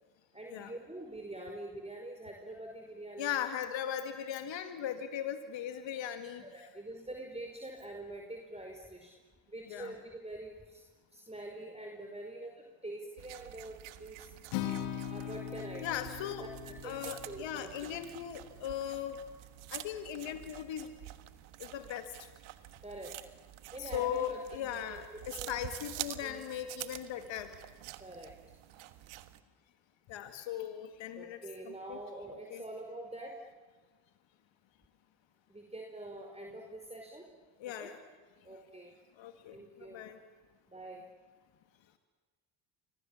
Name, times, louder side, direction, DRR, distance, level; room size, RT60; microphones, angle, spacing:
voice 1, 0.3-3.5 6.4-9.1 9.5-10.8 11.1-14.3 15.1-16.1 16.4-18.0 22.8-23.2 23.7-25.0 25.4-25.6 26.2-26.5 28.0-28.3 31.1-33.4 35.5-37.3 37.6-37.9 38.4-39.0 39.5-40.1 40.7-41.1, right 1 dB, 15° right, 1 dB, 5.1 m, -45 dB
voice 2, 3.2-6.7 9.7-9.9 15.8-16.4 16.8-19.2 19.7-20.9 21.6-22.1 23.8-27.5 30.1-31.4 31.6-32.0 32.5-32.6 37.6-38.0 38.5-38.6 39.2-40.2, left 10 dB, 65° left, 7 dB, 2.2 m, -38 dB
sound 1, 13.2-29.4, right 15 dB, 75° right, 1.6 m, -48 dB
Acoustic guitar, 14.5-18.7, left 11 dB, 80° left, 2.8 m, -41 dB
29.5 x 25.5 x 7.3 m, 1.4 s
hypercardioid pair, 55°, 48 cm